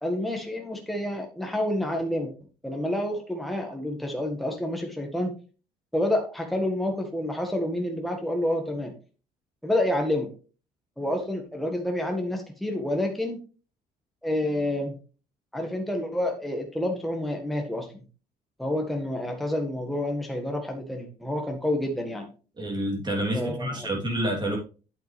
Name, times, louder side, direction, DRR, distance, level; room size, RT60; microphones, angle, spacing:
voice 1, 0.0-2.3 2.6-5.3 5.9-8.9 9.6-10.3 11.0-13.4 14.2-14.9 15.5-17.9 18.6-22.3 23.3-23.9, left 1 dB, ahead, 2 dB, 1.7 m, -28 dB
voice 2, 22.6-24.6, right 1 dB, 25° right, 0 dB, 3.3 m, -28 dB
9.0 x 7.7 x 3.4 m, 0.35 s
cardioid pair, 110°, 17 cm